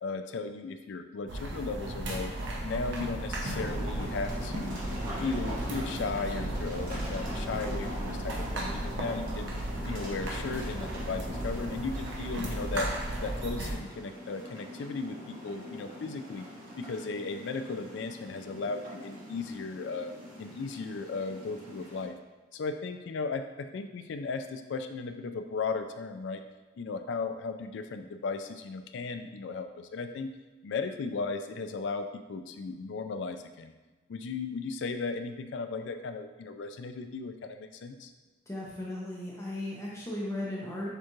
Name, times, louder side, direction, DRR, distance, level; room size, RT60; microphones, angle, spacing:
voice 1, 0.0-2.3 2.6-4.8 5.2-9.5 9.9-12.9 13.2-16.5 16.8-20.1 20.4-22.1 22.5-26.4 26.8-30.3 30.6-33.7 34.1-38.1, left 4 dB, 65° left, 8 dB, 0.3 m, -36 dB
sound 1, 1.3-13.8, right 1 dB, 65° right, 0.7 m, -35 dB
sound 2, 3.5-22.1, equal, 45° right, 1.2 m, -43 dB
voice 2, 38.5-40.9, left 1 dB, 15° left, -5 dB, 0.6 m, -36 dB
6.6 x 2.4 x 3.0 m, 1.3 s
head